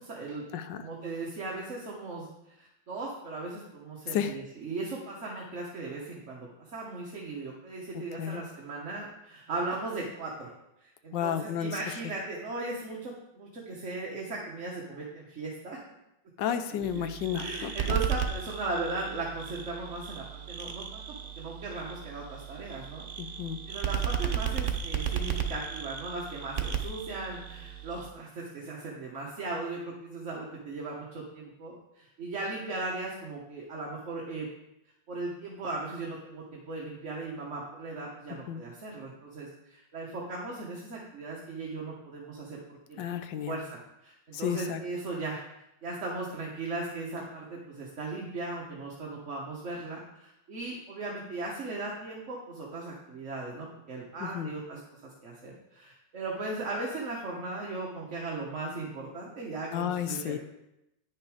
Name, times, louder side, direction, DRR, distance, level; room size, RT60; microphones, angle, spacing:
voice 1, 0.0-0.4 0.8-10.5 10.8-15.8 16.7-17.0 17.4-23.1 23.7-34.5 35.1-43.2 43.5-45.4 45.8-60.4, right 3 dB, 40° right, -3 dB, 1.4 m, -37 dB
voice 2, 0.5-0.9 4.1-4.4 7.9-8.4 11.1-11.8 16.4-18.0 23.2-23.6 38.5-38.6 43.0-43.6 44.3-44.8 54.2-54.5 59.7-60.4, left 9 dB, 75° left, 9 dB, 1.3 m, -32 dB
sound 1, 16.8-28.1, right 8 dB, 85° right, 0.4 m, -35 dB
9.8 x 6.6 x 4.9 m, 0.88 s
omnidirectional pair, 2.1 m